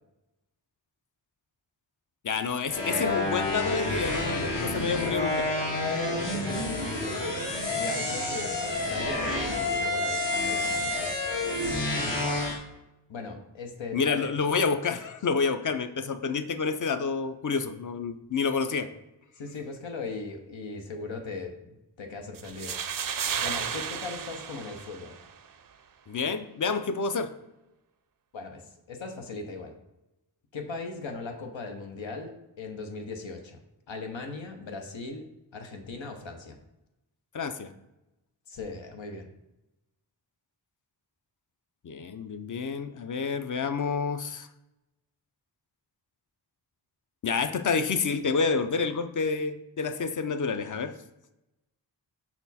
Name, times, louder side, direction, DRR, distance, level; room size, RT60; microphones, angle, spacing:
voice 1, 2.2-5.5 13.9-18.9 26.1-27.3 37.3-37.7 41.8-44.5 47.2-50.9, left 5 dB, 45° left, 9 dB, 0.5 m, -28 dB
sound 1, 2.7-12.6, left 2 dB, 75° left, 1.8 m, -29 dB
voice 2, 6.3-7.5 7.7-11.2 13.1-14.3 19.4-22.8 23.4-25.3 28.3-29.8 30.5-33.6 33.9-35.3 35.5-36.6 38.5-39.3, left 3 dB, 90° left, 3 dB, 0.9 m, -39 dB
sound 2, 22.4-25.4, right 7 dB, 50° right, 0.5 m, -33 dB
5.8 x 4.3 x 4.1 m, 0.93 s
wide cardioid pair, 105°, 44 cm